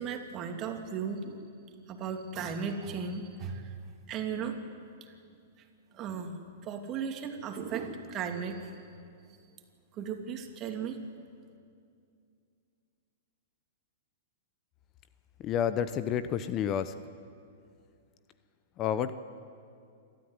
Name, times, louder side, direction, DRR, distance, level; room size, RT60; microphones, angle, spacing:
voice 1, 0.0-1.5 1.9-3.8 4.1-4.6 5.0-5.1 5.9-6.3 6.6-8.8 9.9-11.0, right 6 dB, 35° right, 4 dB, 2.7 m, -36 dB
voice 2, 15.4-16.9 18.8-19.1, left 9 dB, 35° left, 13 dB, 0.9 m, -29 dB
27.5 x 13.5 x 9.7 m, 2.4 s
hypercardioid pair, 115°, 0 cm